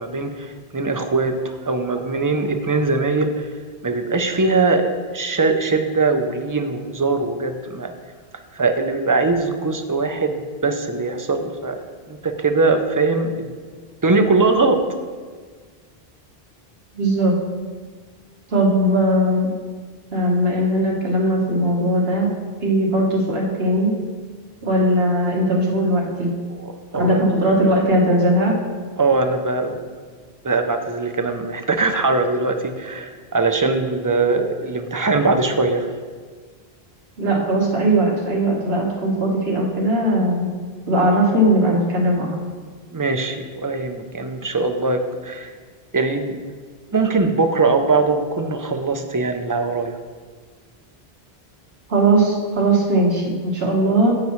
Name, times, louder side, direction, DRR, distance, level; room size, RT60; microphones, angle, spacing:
voice 1, 0.0-3.5 3.8-7.9 8.5-11.8 12.1-13.5 14.0-14.8 26.6-27.2 29.0-29.7 30.4-35.9 42.9-45.5 45.9-46.4 46.9-50.0, right 3 dB, 25° right, 6 dB, 0.5 m, -21 dB
voice 2, 16.9-17.4 18.5-19.5 20.1-22.3 22.6-23.9 24.6-26.3 26.9-28.6 37.2-40.5 40.8-42.3 51.9-54.2, right 1 dB, 75° right, -1 dB, 1.7 m, -19 dB
10.5 x 8.3 x 3.1 m, 1.5 s
omnidirectional pair, 1.1 m